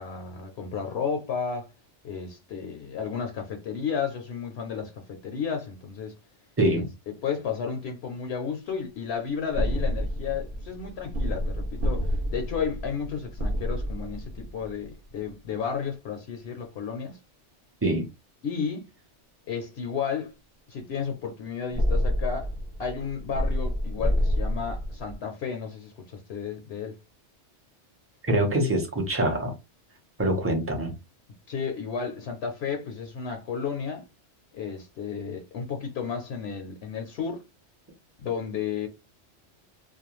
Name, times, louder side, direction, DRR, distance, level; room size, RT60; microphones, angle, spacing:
voice 1, 0.0-1.7 2.0-6.2 6.7-17.2 18.4-18.9 19.5-20.3 20.7-22.5 22.8-27.0 31.5-34.1 34.5-37.4 38.2-38.9, left 6 dB, 70° left, 0.8 m, -33 dB
voice 2, 6.6-6.9 17.8-18.0 28.3-29.5 30.2-30.9, right 1 dB, 15° right, 0.6 m, -24 dB
sound 1, 9.5-15.2 21.7-25.1, equal, 55° right, 0.7 m, -29 dB
2.4 x 2.2 x 2.9 m
omnidirectional pair, 1.2 m